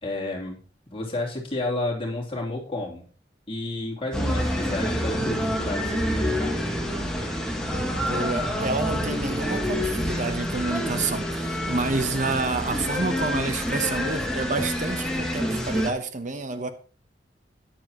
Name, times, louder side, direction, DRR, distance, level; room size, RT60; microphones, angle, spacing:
voice 1, 0.0-0.6 0.9-3.1 3.5-6.6, left 2 dB, 30° left, 3.1 m, -31 dB
sound 1, 4.1-15.9, equal, 5° left, 2.1 m, -27 dB
voice 2, 8.0-16.7, right 3 dB, 45° right, 0.9 m, -29 dB
13.5 x 10.5 x 3.0 m
head